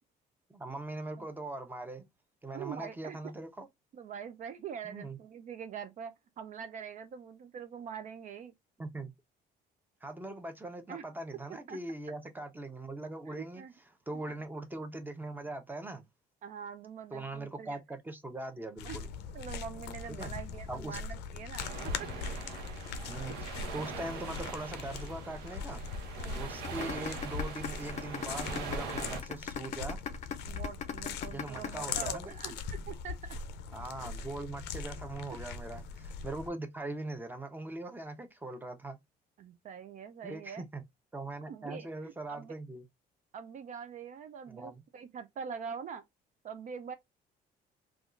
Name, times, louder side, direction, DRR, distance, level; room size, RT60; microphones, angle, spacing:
voice 1, 0.5-2.1 2.4-3.7 4.8-5.2 8.8-9.1 10.0-13.6 14.1-16.1 17.1-19.1 20.2-20.3 20.7-21.0 23.1-25.8 26.3-30.0 31.3-32.6 33.7-39.0 40.2-40.8 41.1-42.8 44.5-44.8, right 2 dB, 10° right, 0.7 m, -41 dB
voice 2, 2.5-3.2 3.9-8.5 10.9-11.0 11.7-11.8 13.3-13.7 14.1-14.2 16.4-17.8 18.8-19.0 19.3-21.9 26.2-26.6 30.4-33.4 39.4-40.6 41.5-42.5 43.3-46.0 46.4-46.9, right 7 dB, 50° right, 0.4 m, -44 dB
sound 1, 18.8-36.5, left 5 dB, 90° left, 0.5 m, -41 dB
sound 2, 21.6-29.2, right 4 dB, 85° right, 1.0 m, -42 dB
sound 3, 26.6-32.7, left 7 dB, 40° left, 0.5 m, -38 dB
3.4 x 2.4 x 2.4 m
cardioid pair, 110°, 17 cm